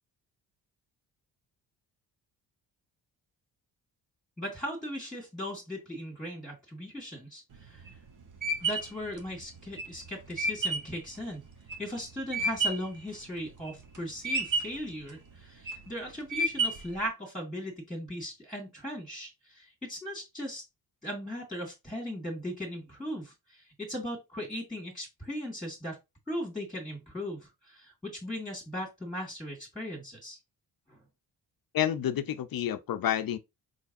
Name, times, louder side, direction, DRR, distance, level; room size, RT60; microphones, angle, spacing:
voice 1, 4.4-7.9 8.6-11.4 11.8-20.6 21.0-26.0 26.3-30.4 30.9-31.0, equal, ahead, 2.0 m, -38 dB
sound 1, 7.5-13.0 13.4-14.0 14.2-14.9 15.4-15.9 16.3-17.0, right 2 dB, 40° right, 1.1 m, -31 dB
voice 2, 31.7-33.4, left 11 dB, 50° left, 0.6 m, -29 dB
3.9 x 3.3 x 2.7 m
supercardioid pair, 50°, 47 cm